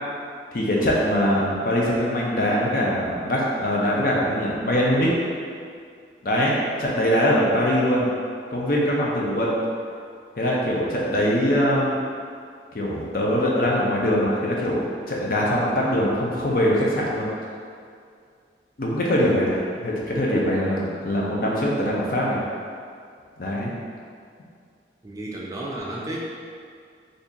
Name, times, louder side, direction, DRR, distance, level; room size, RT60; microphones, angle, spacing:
voice 1, 0.5-5.1 6.2-8.1 8.5-9.5 10.4-12.0 12.7-17.3 18.8-22.4 23.4-23.7, equal, 55° left, -4 dB, 0.6 m, -22 dB
voice 2, 25.0-26.2, right 1 dB, 20° right, -4 dB, 0.3 m, -32 dB
2.8 x 2.5 x 3.7 m, 2.2 s
head